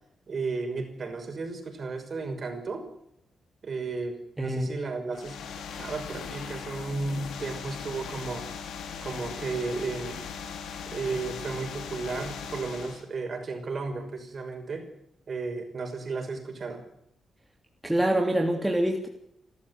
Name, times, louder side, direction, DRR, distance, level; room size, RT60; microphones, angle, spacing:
voice 1, 0.3-2.8 3.6-5.4 5.7-8.5 9.0-10.2 10.9-14.9 15.3-16.8, right 3 dB, 45° right, 5 dB, 5.7 m, -34 dB
voice 2, 4.4-4.7 17.8-19.1, right 1 dB, 10° right, 2 dB, 2.9 m, -25 dB
sound 1, 5.1-13.1, left 6 dB, 90° left, 3.8 m, -39 dB
29.5 x 13.5 x 9.8 m, 0.77 s
cardioid pair, 115°, 0 cm